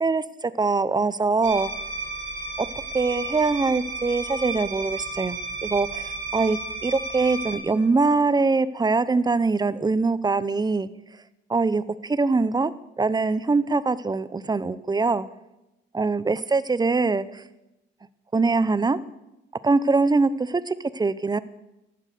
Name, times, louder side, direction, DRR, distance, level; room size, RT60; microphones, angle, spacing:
voice 1, 0.0-1.7 2.6-2.7 2.9-10.9 11.5-12.7 13.0-15.3 15.9-17.4 18.3-19.0 19.6-21.4, right 3 dB, 20° right, 16 dB, 0.8 m, -23 dB
sound 1, 1.4-7.6, right 3 dB, 75° right, 3.4 m, -33 dB
14.5 x 11.5 x 6.7 m, 0.93 s
cardioid pair, 90°, 20 cm